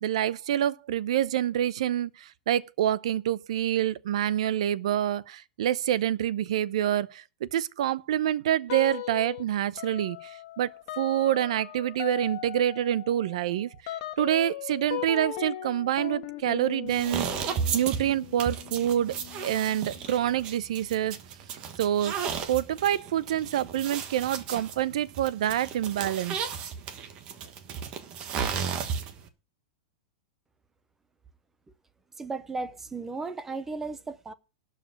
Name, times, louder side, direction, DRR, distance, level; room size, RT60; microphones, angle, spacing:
voice 1, 0.0-10.7 11.0-19.2 19.4-21.2 21.8-22.2 22.5-26.4, right 11 dB, 65° right, 0.7 m, -27 dB
sound 1, 8.7-9.4 9.8-20.1, left 14 dB, 45° left, 1.4 m, -39 dB
sound 2, 16.9-29.3, right 7 dB, 25° right, 1.3 m, -34 dB
voice 2, 32.2-34.3, right 3 dB, 10° right, 0.6 m, -35 dB
12.0 x 5.0 x 8.3 m
supercardioid pair, 170°, 4 cm